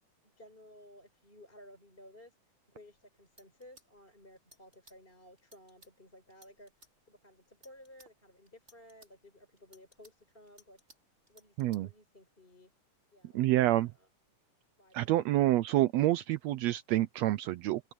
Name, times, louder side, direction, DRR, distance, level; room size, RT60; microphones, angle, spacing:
voice 1, 0.2-2.4 2.7-6.7 7.1-10.8 11.3-12.7 13.1-14.1 14.8-15.1, left 1 dB, 15° left, 5.0 m, -56 dB
sound 1, 2.9-3.0 3.3-5.0 5.4-5.9 6.3-6.9 7.4-8.1 8.5-9.1 9.6-11.0 11.3-11.8, right 1 dB, 20° right, 8.5 m, -60 dB
voice 2, 13.3-13.9 14.9-17.8, right 15 dB, 85° right, 1.5 m, -27 dB
open air
omnidirectional pair, 3.6 m